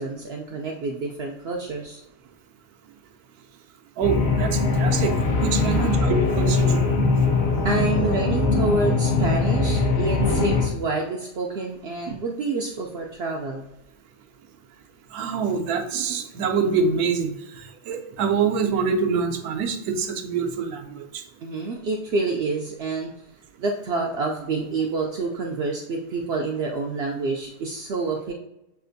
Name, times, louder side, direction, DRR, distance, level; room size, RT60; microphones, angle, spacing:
voice 1, 0.0-2.0 5.7-5.9 7.6-13.6 21.4-23.1 23.6-28.3, right 3 dB, 70° right, 1 dB, 0.6 m, -28 dB
sound 1, 4.0-10.7, left 3 dB, 55° left, 0.6 m, -21 dB
voice 2, 4.0-6.9 12.1-12.2 15.1-21.2, right 5 dB, 85° right, 5 dB, 1.1 m, -25 dB
6.9 x 2.4 x 2.6 m, 0.89 s
omnidirectional pair, 1.6 m